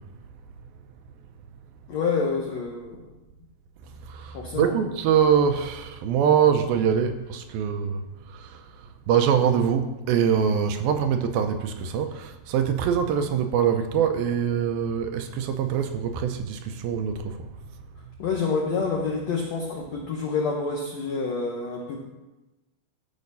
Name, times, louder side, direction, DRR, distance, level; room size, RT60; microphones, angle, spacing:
voice 1, 1.9-3.1 4.3-4.8 18.2-22.0, left 4 dB, 80° left, 1.5 m, -28 dB
voice 2, 4.1-8.0 8.3-8.6 9.1-17.4, right 8 dB, 80° right, 2.4 m, -24 dB
14.0 x 5.7 x 5.4 m
omnidirectional pair, 4.5 m